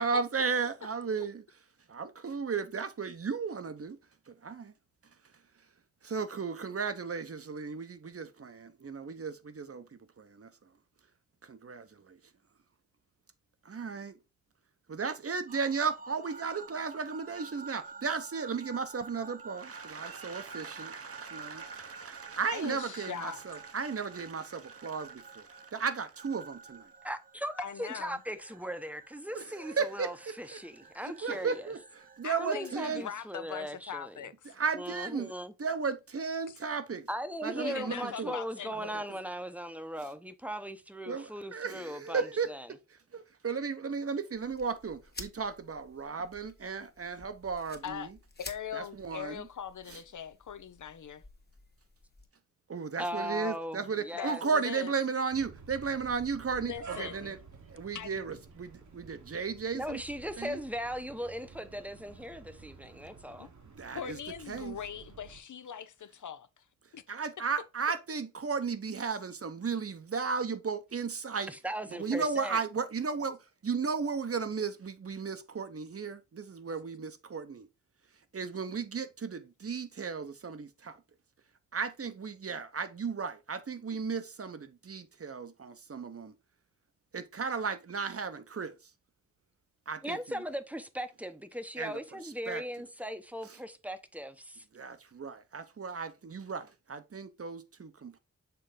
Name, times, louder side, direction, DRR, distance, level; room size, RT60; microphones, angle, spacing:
voice 1, 0.0-1.4 1.9-4.0 4.3-4.7 6.0-10.5 11.4-12.2 13.6-14.2 14.9-26.9 29.3-30.6 31.0-33.0 34.5-35.3 35.6-37.1 37.4-38.4 38.7-39.2 41.1-42.5 42.9-48.2 48.7-49.5 49.9-50.0 52.7-57.4 57.7-60.0 60.4-60.6 63.8-64.2 64.5-64.8 67.1-71.5 71.9-77.7 78.3-81.0 81.7-86.3 87.1-88.8 89.9-90.4 91.8-92.6 93.5-93.6 94.7-98.2, right 5 dB, 50° right, 0.8 m, -35 dB
sound 1, 15.5-32.8, right 4 dB, 30° right, 0.4 m, -50 dB
voice 2, 22.5-23.4 27.6-28.2 32.2-34.6 37.6-39.1 47.8-48.1 48.4-51.2 54.1-54.9 56.6-57.4 57.9-58.2 63.4-63.5 63.9-66.6 66.9-67.0, left 8 dB, 75° left, 0.6 m, -41 dB
voice 3, 27.0-31.7 32.4-34.2 34.7-35.5 37.1-42.7 53.0-54.4 59.7-63.5 71.5-72.6 90.0-94.6, equal, 5° right, 0.7 m, -38 dB
sound 2, 44.3-52.3, left 3 dB, 35° left, 1.2 m, -52 dB
sound 3, 55.3-65.4, right 5 dB, 70° right, 1.2 m, -51 dB
6.9 x 3.9 x 3.8 m
wide cardioid pair, 85°, 30 cm